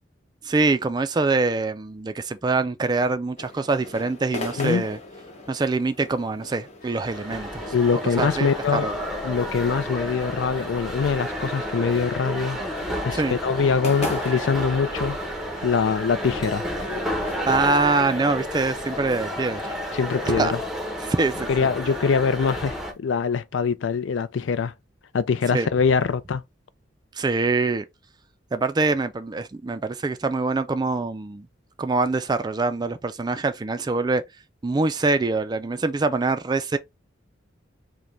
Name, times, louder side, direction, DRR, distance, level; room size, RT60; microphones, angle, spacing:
voice 1, 0.4-5.0 5.5-7.6 8.2-9.0 13.1-13.4 17.4-19.7 20.4-20.5 21.0-21.5 25.5-25.7 27.1-27.8 28.5-31.5 31.8-34.2 34.6-36.8, right 3 dB, 20° right, 0.3 m, -24 dB
sound 1, 3.4-23.0, left 2 dB, 35° left, 0.9 m, -41 dB
sound 2, 6.8-20.4, left 4 dB, 50° left, 1.5 m, -45 dB
sound 3, 7.0-22.9, equal, ahead, 0.8 m, -31 dB
voice 2, 7.7-8.9 9.2-12.6 13.0-15.2 15.6-16.6 19.9-20.6 21.5-24.7 25.1-26.4, left 5 dB, 80° left, 0.4 m, -23 dB
4.9 x 2.2 x 3.2 m
head